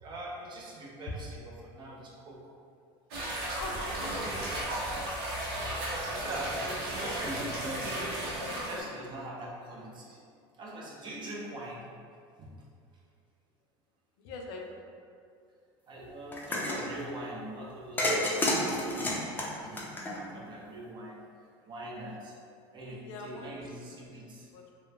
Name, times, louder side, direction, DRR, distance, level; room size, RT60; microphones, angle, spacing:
voice 1, 0.0-2.4 6.0-8.0 8.7-10.2 10.6-11.9 12.4-12.5 15.9-19.8 20.1-21.3 21.7-22.3 22.7-24.5, right 1 dB, 35° right, -3 dB, 0.6 m, -42 dB
sound 1, 3.1-8.8, right 1 dB, 80° right, 0.7 m, -34 dB
voice 2, 3.6-4.6 8.4-8.5 14.2-14.7 22.8-23.6 24.5-24.7, left 3 dB, 75° left, 1 dB, 0.4 m, -43 dB
sound 2, 16.3-16.8 18.0-20.5, left 1 dB, 15° left, 0.4 m, -29 dB
3.0 x 2.0 x 2.3 m, 2.3 s
supercardioid pair, 100°, 13 cm